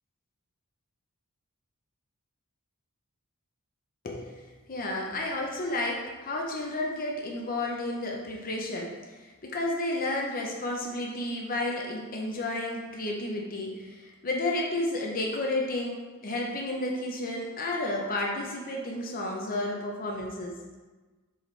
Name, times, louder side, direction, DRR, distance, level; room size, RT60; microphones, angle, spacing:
voice 1, 4.0-8.9 9.2-20.6, left 2 dB, 40° left, -1 dB, 0.7 m, -32 dB
7.4 x 4.2 x 3.3 m, 1.3 s
head